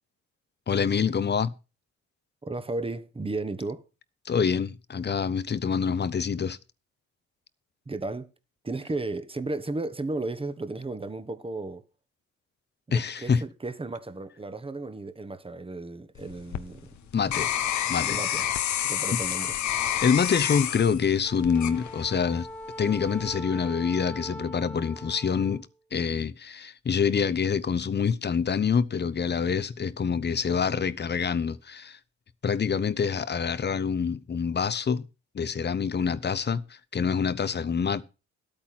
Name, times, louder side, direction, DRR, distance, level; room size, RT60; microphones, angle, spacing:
voice 1, 0.7-1.5 4.2-6.6 12.9-13.4 17.1-17.6 17.9-18.2 19.1-19.2 20.0-22.5 22.8-25.7 25.9-32.0 32.4-35.0 35.3-36.6 36.9-38.0, left 6 dB, 35° left, 1.0 m, -26 dB
voice 2, 2.4-3.9 7.9-8.3 8.6-11.8 12.9-17.1 18.0-18.5 18.8-19.5, right 2 dB, 20° right, 1.3 m, -34 dB
sound 1, 16.2-22.4 22.9-23.4, left 10 dB, 70° left, 1.1 m, -29 dB
Wind instrument woodwind instrument, 21.2-25.6, equal, 5° left, 1.2 m, -41 dB
12.0 x 8.9 x 6.0 m
cardioid pair, 90°, 30 cm